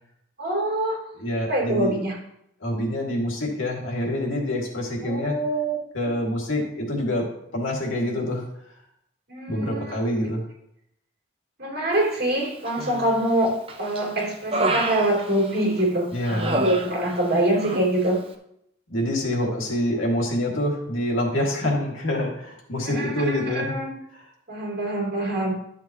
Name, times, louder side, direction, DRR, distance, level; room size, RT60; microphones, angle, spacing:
voice 1, 0.4-1.0 1.5-2.2 5.0-6.1 9.3-10.0 11.6-18.2 22.8-23.9 24.5-25.6, right 1 dB, 50° right, -2 dB, 3.5 m, -25 dB
voice 2, 1.2-1.9 2.6-5.4 5.9-8.4 9.5-10.4 16.1-16.6 18.9-23.8, left 1 dB, 75° left, -1 dB, 2.3 m, -26 dB
Human voice, 12.6-13.3 13.7-15.8 16.2-17.3 17.6-17.9, right 2 dB, 30° right, 0.7 m, -28 dB
12.0 x 7.4 x 3.0 m, 0.76 s
head